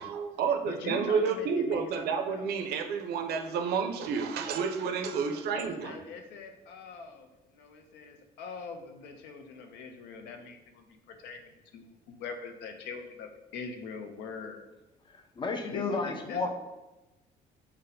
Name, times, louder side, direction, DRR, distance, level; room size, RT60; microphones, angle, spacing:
voice 1, 0.0-6.0, right 5 dB, 70° right, 5 dB, 0.4 m, -30 dB
voice 2, 0.7-2.5 5.5-14.6 15.7-16.5, left 5 dB, 85° left, 5 dB, 0.5 m, -43 dB
voice 3, 15.4-16.5, left 4 dB, 30° left, 5 dB, 0.4 m, -31 dB
2.7 x 2.1 x 3.9 m, 1.0 s
cardioid pair, 110°, 17 cm